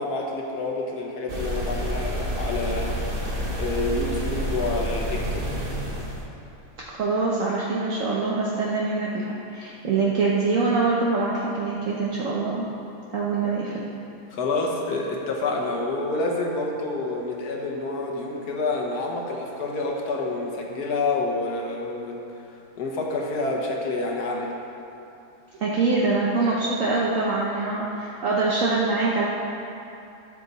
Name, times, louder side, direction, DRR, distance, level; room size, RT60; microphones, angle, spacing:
voice 1, 0.0-5.5 14.3-22.2 22.8-24.5, left 2 dB, 75° left, 0 dB, 1.7 m, -28 dB
sound 1, 1.3-6.2, equal, 40° right, 1.2 m, -29 dB
voice 2, 6.9-12.7 13.1-13.8 25.6-29.3, right 3 dB, 60° right, -5 dB, 1.2 m, -24 dB
13.0 x 7.2 x 4.1 m, 2.8 s
omnidirectional pair, 1.7 m